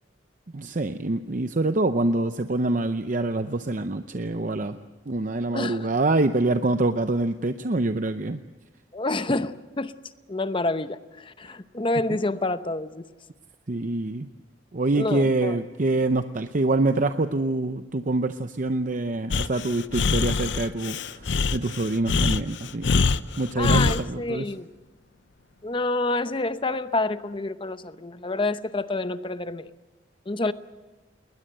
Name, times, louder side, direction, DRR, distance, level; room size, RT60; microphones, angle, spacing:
voice 1, 0.5-4.8 5.1-8.4 13.7-14.3 14.7-23.1 23.4-24.5, right 2 dB, 45° right, 0.7 m, -25 dB
voice 2, 5.5-5.9 8.9-9.9 10.3-13.0 15.0-15.6 23.6-24.7 25.6-29.7 30.3-30.5, left 2 dB, 30° left, 0.8 m, -28 dB
Breathing, 19.3-24.0, left 4 dB, 70° left, 0.7 m, -24 dB
20.5 x 20.0 x 7.9 m
head